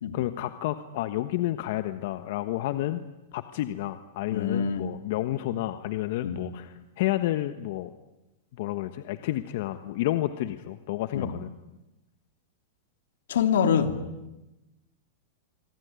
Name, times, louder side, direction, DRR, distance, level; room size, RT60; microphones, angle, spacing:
voice 1, 0.1-3.0 3.3-7.9 8.6-11.5, left 14 dB, 60° left, 11 dB, 1.3 m, -30 dB
voice 2, 4.3-4.9 6.2-6.4 11.1-11.3 13.3-14.0, left 7 dB, 85° left, 8 dB, 3.0 m, -25 dB
25.5 x 24.5 x 9.7 m, 1.0 s
supercardioid pair, 150°, 0 cm